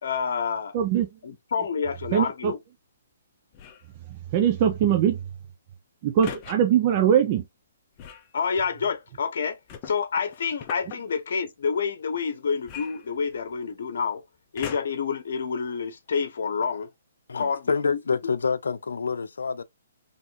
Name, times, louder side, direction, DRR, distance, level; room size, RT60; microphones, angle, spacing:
voice 1, 0.0-0.8 1.2-2.6 8.3-9.6 9.9-14.2 14.5-16.9 17.3-18.3, left 6 dB, 65° left, 1.1 m, -28 dB
voice 2, 0.7-1.1 2.1-2.5 4.3-5.2 6.0-7.4, right 9 dB, 35° right, 0.7 m, -21 dB
sound 1, 3.5-3.9 6.2-6.6 8.0-8.3 9.7-11.0 12.6-13.6 14.6-15.1 15.8-15.9, left 8 dB, 30° left, 0.8 m, -40 dB
voice 3, 17.3-19.6, left 5 dB, 85° left, 0.6 m, -27 dB
4.0 x 3.3 x 3.0 m
hypercardioid pair, 150°, 0 cm